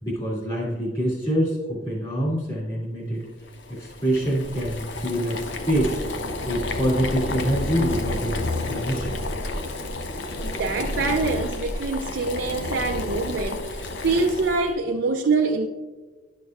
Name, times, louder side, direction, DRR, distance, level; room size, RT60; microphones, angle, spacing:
voice 1, 0.0-3.3 3.7-6.0 6.5-9.2, equal, 30° left, -5 dB, 2.6 m, -26 dB
Boiling, 3.4-14.7, left 2 dB, 90° left, 0.7 m, -30 dB
voice 2, 10.4-15.7, right 3 dB, 85° right, 3 dB, 0.5 m, -25 dB
11.5 x 6.5 x 2.4 m, 1.3 s
head